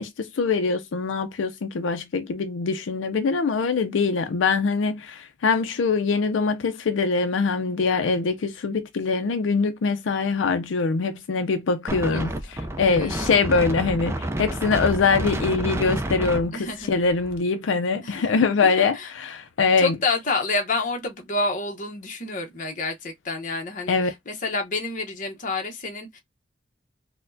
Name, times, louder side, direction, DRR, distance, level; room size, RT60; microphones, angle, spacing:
voice 1, 0.0-20.0 23.9-24.1, left 4 dB, 85° left, 0.5 m, -23 dB
Wind, 11.9-17.4, right 1 dB, 15° right, 0.4 m, -30 dB
voice 2, 12.8-13.1 16.5-16.9 18.0-18.2 18.6-19.1 19.8-26.2, left 3 dB, 45° left, 0.9 m, -29 dB
4.2 x 2.1 x 2.6 m
head